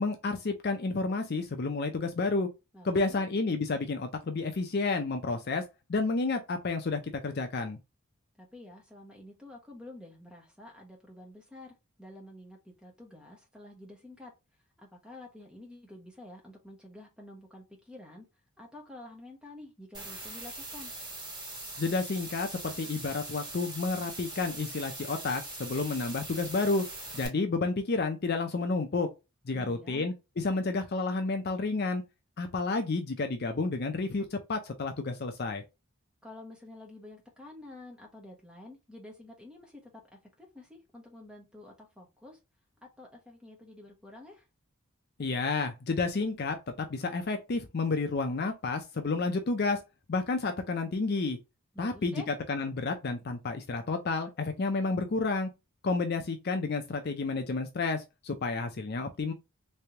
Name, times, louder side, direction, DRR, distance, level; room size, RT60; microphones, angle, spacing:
voice 1, 0.0-2.5 2.8-7.8 21.8-26.8 27.1-29.1 29.5-32.0 32.4-35.6 45.2-49.8 50.1-51.4 51.8-52.1 52.5-55.5 55.8-59.3, left 3 dB, 45° left, 0.5 m, -30 dB
voice 2, 2.7-3.3 8.4-14.3 14.8-18.3 18.6-20.9 29.5-30.1 36.2-42.4 42.8-44.5 51.7-52.4, left 1 dB, 5° right, 1.2 m, -49 dB
sound 1, 19.9-27.3, right 2 dB, 20° right, 2.1 m, -42 dB
3.3 x 3.3 x 2.8 m
head